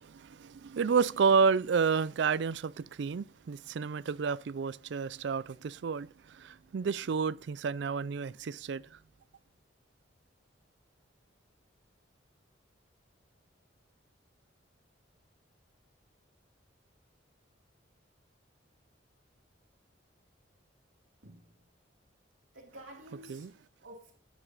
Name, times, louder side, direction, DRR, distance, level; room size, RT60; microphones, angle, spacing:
voice 1, 0.0-9.0 23.3-23.5, right 5 dB, 60° right, 0.4 m, -30 dB
voice 2, 21.2-21.7 22.5-24.2, right 1 dB, 90° right, 2.3 m, -51 dB
9.1 x 8.2 x 4.1 m
head